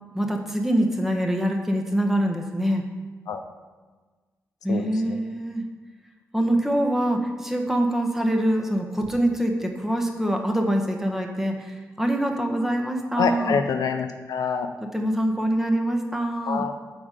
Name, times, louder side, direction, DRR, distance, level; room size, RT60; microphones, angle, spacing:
voice 1, 0.1-2.8 4.6-5.6 6.3-13.6 14.8-16.7, right 1 dB, 5° right, 2 dB, 1.3 m, -24 dB
voice 2, 4.7-5.2 13.2-14.7 16.5-16.7, left 6 dB, 80° left, 6 dB, 0.5 m, -26 dB
7.1 x 5.1 x 5.0 m, 1.4 s
supercardioid pair, 50°, 6 cm